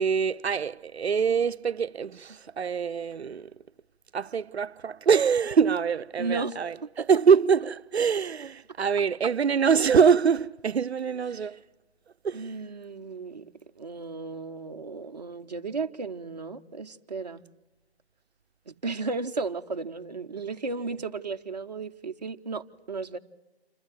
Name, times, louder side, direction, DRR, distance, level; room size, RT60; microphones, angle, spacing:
voice 1, 0.0-3.5 4.1-11.6 12.2-12.5, right 6 dB, 80° right, 0.7 m, -24 dB
voice 2, 6.2-6.6 11.3-11.5 12.3-17.4 18.7-23.2, right 4 dB, 40° right, 0.8 m, -34 dB
27.0 x 13.5 x 9.5 m
figure-of-eight pair, 170°, 32 cm